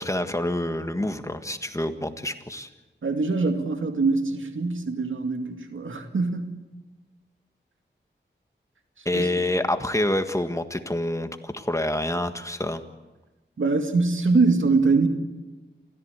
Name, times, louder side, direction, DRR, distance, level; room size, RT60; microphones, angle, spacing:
voice 1, 0.0-2.7 9.0-12.8, left 1 dB, 15° left, 8 dB, 1.6 m, -27 dB
voice 2, 3.0-6.6 9.1-9.3 13.6-15.1, right 3 dB, 85° right, 5 dB, 2.2 m, -23 dB
29.0 x 14.5 x 8.2 m, 1.2 s
wide cardioid pair, 70°, 20 cm